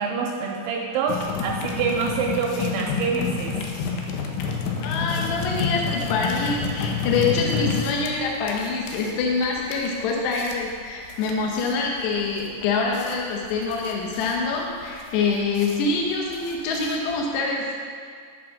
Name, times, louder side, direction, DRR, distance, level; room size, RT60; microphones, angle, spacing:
voice 1, 0.0-3.6, right 5 dB, 80° right, 0 dB, 2.5 m, -26 dB
sound 1, 1.1-17.4, left 5 dB, 90° left, 3.4 m, -30 dB
voice 2, 4.8-17.7, left 4 dB, 75° left, -1 dB, 3.0 m, -25 dB
11.5 x 5.0 x 6.2 m, 2.1 s
omnidirectional pair, 5.4 m